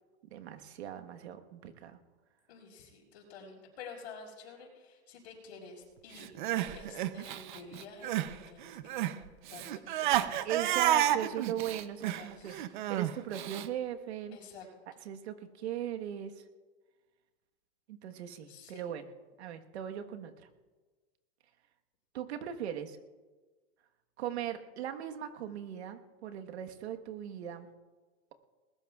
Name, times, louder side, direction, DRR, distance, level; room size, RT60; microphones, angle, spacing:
voice 1, 0.3-2.0 10.0-10.2 10.4-14.4 14.9-16.4 17.9-19.1 19.4-20.5 22.1-23.0 24.2-27.7, right 10 dB, 75° right, 6 dB, 1.4 m, -39 dB
voice 2, 2.5-6.3 6.7-9.1 9.5-11.4 12.2-12.6 14.3-14.7 18.5-18.8, left 5 dB, 75° left, -1 dB, 5.8 m, -50 dB
Crying sobbing, 6.2-8.3 8.6-13.7, right 12 dB, 45° right, 0.6 m, -31 dB
20.0 x 19.5 x 2.4 m, 1.3 s
supercardioid pair, 170°, 33 cm